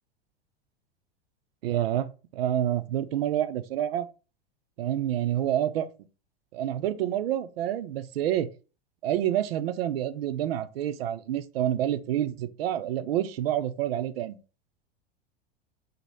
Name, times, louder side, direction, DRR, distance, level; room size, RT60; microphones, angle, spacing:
voice 1, 1.6-4.1 4.8-5.9 6.5-8.5 9.0-14.4, right 11 dB, 75° right, 0.5 m, -28 dB
4.2 x 2.0 x 3.1 m
hypercardioid pair, 95°, 30 cm